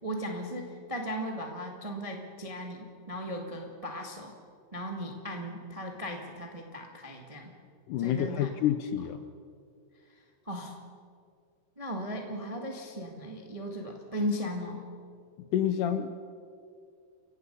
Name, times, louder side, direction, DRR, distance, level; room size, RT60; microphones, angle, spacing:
voice 1, 0.0-4.3 4.7-7.5 8.0-8.5 10.4-10.8 11.8-14.8, equal, 25° right, 1 dB, 0.8 m, -37 dB
voice 2, 7.9-9.2 15.5-16.1, left 10 dB, 75° left, 9 dB, 2.0 m, -28 dB
29.5 x 16.0 x 5.5 m, 2.3 s
omnidirectional pair, 4.3 m